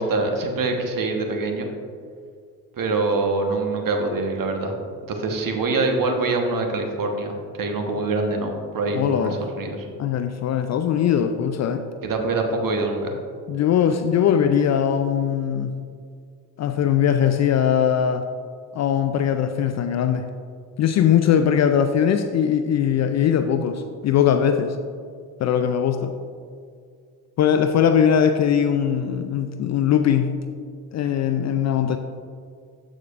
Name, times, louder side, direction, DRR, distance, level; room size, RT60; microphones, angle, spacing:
voice 1, 0.0-1.7 2.8-4.7 5.1-7.3 7.6-9.9 12.0-13.1, right 3 dB, 45° right, 4 dB, 1.3 m, -24 dB
voice 2, 8.9-9.4 10.0-11.9 13.5-15.8 16.6-18.2 18.7-20.3 20.8-24.8 25.4-26.1 27.4-30.4 30.9-32.0, left 8 dB, 40° left, 8 dB, 0.4 m, -20 dB
14.0 x 5.0 x 2.5 m, 2.2 s
figure-of-eight pair, 45°, 47 cm